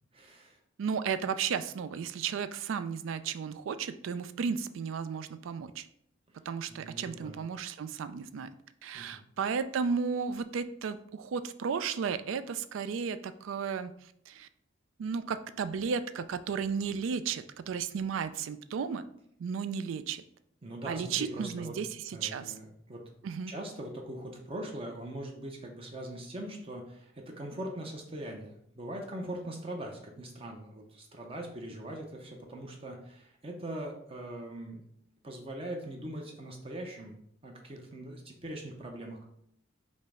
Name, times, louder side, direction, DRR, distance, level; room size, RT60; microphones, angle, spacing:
voice 1, 0.1-0.6 6.7-7.3 8.9-9.2 20.6-21.8 22.1-23.0 23.5-34.8 35.2-37.1 37.4-39.2, right 1 dB, 30° right, 1 dB, 0.6 m, -41 dB
voice 2, 0.8-5.9 6.5-8.5 8.8-13.9 14.3-14.5 15.0-19.0 19.4-20.2 20.9-22.5 23.2-23.5, right 6 dB, 80° right, 12 dB, 0.3 m, -34 dB
5.3 x 2.0 x 4.8 m, 0.71 s
head